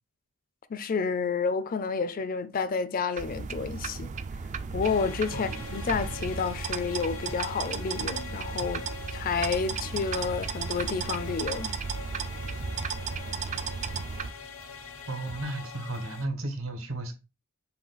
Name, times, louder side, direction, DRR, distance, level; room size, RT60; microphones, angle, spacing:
voice 1, 0.7-4.1 4.7-8.8 9.1-11.7, left 5 dB, 45° left, 0.4 m, -30 dB
sound 1, 3.2-14.3, right 5 dB, 35° right, 0.3 m, -35 dB
sound 2, 4.8-16.3, left 5 dB, 75° left, 0.7 m, -43 dB
sound 3, 5.9-8.2 8.4-16.1 16.4-16.5, right 1 dB, 55° right, 0.8 m, -48 dB
voice 2, 15.1-17.1, right 2 dB, 80° right, 1.0 m, -34 dB
5.6 x 2.3 x 4.0 m
head